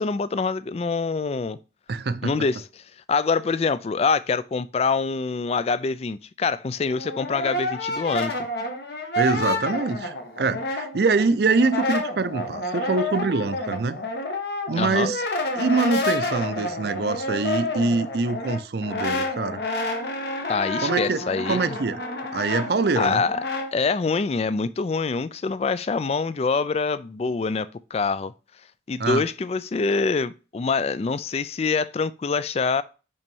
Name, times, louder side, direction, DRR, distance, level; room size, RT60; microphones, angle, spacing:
voice 1, 0.0-1.6 2.2-2.8 3.1-8.5 14.8-15.1 20.5-21.8 23.0-23.4 23.7-28.3 28.9-32.8, left 4 dB, 35° left, 0.3 m, -25 dB
voice 2, 1.9-2.3 9.2-14.0 14.7-15.2 15.6-19.6 20.8-21.2 21.5-22.0 22.3-23.2 29.0-29.2, right 4 dB, 60° right, 0.5 m, -24 dB
Brass instrument, 6.8-11.2 11.5-23.7, left 2 dB, 60° left, 1.3 m, -29 dB
5.4 x 4.2 x 5.4 m
head